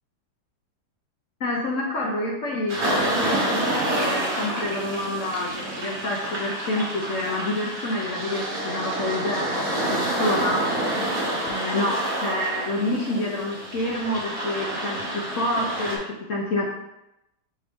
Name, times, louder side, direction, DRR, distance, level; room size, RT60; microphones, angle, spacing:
voice 1, 1.4-10.6 11.5-16.7, left 1 dB, 65° left, -2 dB, 0.8 m, -28 dB
sound 1, 2.7-16.0, right 1 dB, 60° right, 1.4 m, -28 dB
5.1 x 2.6 x 3.4 m, 0.90 s
omnidirectional pair, 1.8 m